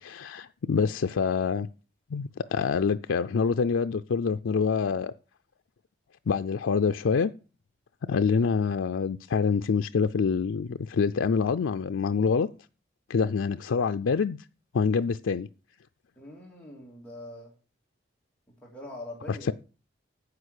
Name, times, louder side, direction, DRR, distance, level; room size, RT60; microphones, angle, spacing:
voice 1, 0.0-1.7 2.1-5.1 6.3-7.3 8.1-12.5 13.1-14.4 14.7-15.5 19.3-19.5, left 5 dB, 85° left, 0.4 m, -26 dB
voice 2, 16.2-17.5 18.6-19.5, left 1 dB, 5° left, 2.5 m, -43 dB
9.7 x 8.2 x 6.5 m
head